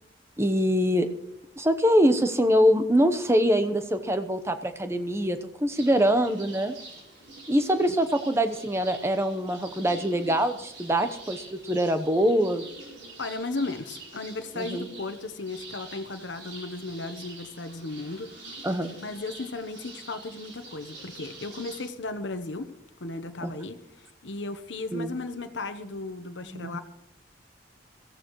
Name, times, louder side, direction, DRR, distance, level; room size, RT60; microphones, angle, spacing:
voice 1, 0.4-1.1 1.6-6.7 7.5-12.6 14.6-14.9 18.6-18.9 23.4-23.5 24.9-25.1 26.5-26.7, equal, 15° right, 9 dB, 0.9 m, -24 dB
sound 1, 5.7-21.9, right 2 dB, 85° right, 4.7 m, -46 dB
voice 2, 13.2-18.3 19.0-22.7 23.0-23.8 24.2-26.8, left 3 dB, 80° left, 8 dB, 0.9 m, -35 dB
22.0 x 14.5 x 3.1 m, 0.83 s
head